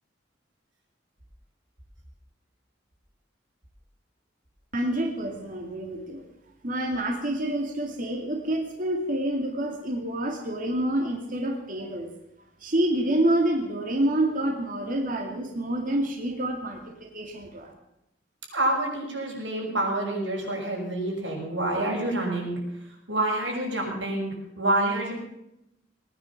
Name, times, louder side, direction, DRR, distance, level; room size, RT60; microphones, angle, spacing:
voice 1, 4.7-6.2 6.6-12.1 12.6-17.7, right 1 dB, 50° right, 2 dB, 2.4 m, -27 dB
voice 2, 18.5-22.6 23.1-25.1, right 1 dB, 85° right, 0 dB, 6.2 m, -27 dB
19.5 x 10.0 x 7.3 m, 0.84 s
head